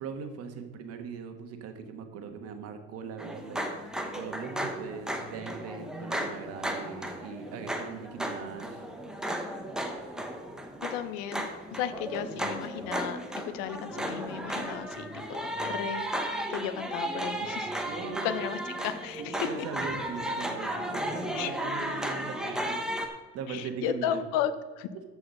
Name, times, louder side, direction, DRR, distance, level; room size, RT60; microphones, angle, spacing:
voice 1, 0.0-3.7 4.1-8.8 17.9-18.3 19.2-22.8 23.3-24.2, right 6 dB, 50° right, 6 dB, 1.3 m, -40 dB
sound 1, 3.2-23.1, right 1 dB, ahead, 0.8 m, -34 dB
voice 2, 10.8-13.2 13.4-16.0 16.5-17.8 18.2-19.5 21.3-21.5 23.5-24.5 24.8-24.9, left 10 dB, 85° left, 12 dB, 0.8 m, -34 dB
13.5 x 4.9 x 5.4 m, 1.3 s
cardioid pair, 150°, 30 cm